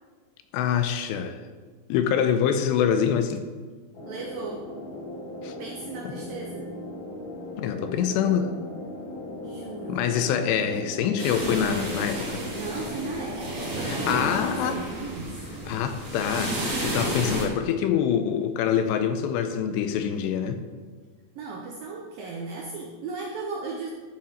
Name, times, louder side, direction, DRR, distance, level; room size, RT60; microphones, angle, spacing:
voice 1, 0.5-1.4 1.9-3.4 5.4-5.6 7.6-8.5 9.9-12.4 13.8-14.8 15.7-20.6, left 8 dB, 80° left, 8 dB, 2.7 m, -25 dB
sound 1, 3.9-14.8, left 1 dB, 60° left, 3.9 m, -38 dB
voice 2, 4.1-4.6 5.6-6.7 9.4-10.1 12.6-15.4 21.4-23.9, right 4 dB, 80° right, -1 dB, 2.1 m, -36 dB
sound 2, 11.2-17.4, right 1 dB, 35° right, 1.2 m, -32 dB
12.5 x 5.8 x 5.0 m, 1.5 s
omnidirectional pair, 5.2 m